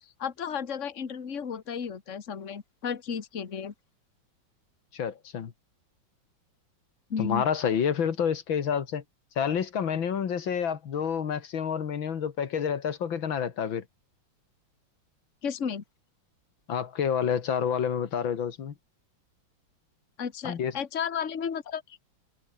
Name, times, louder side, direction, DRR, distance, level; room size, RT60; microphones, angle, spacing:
voice 1, 0.2-3.7 7.1-7.4 15.4-15.8 20.2-22.0, left 7 dB, 40° left, 1.9 m, -33 dB
voice 2, 4.9-5.5 7.2-9.0 9.4-13.8 16.7-18.7 20.4-20.7, left 7 dB, 80° left, 2.5 m, -28 dB
omnidirectional pair, 2.1 m